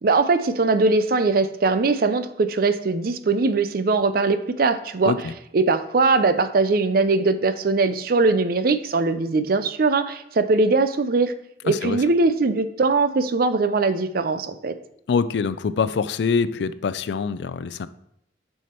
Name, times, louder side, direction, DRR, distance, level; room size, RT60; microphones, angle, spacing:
voice 1, 0.0-5.2 5.5-11.3 11.6-14.7, right 3 dB, 55° right, 11 dB, 0.5 m, -21 dB
voice 2, 11.7-12.0 15.1-17.9, left 5 dB, 75° left, 14 dB, 0.4 m, -24 dB
6.1 x 5.6 x 4.4 m, 0.74 s
head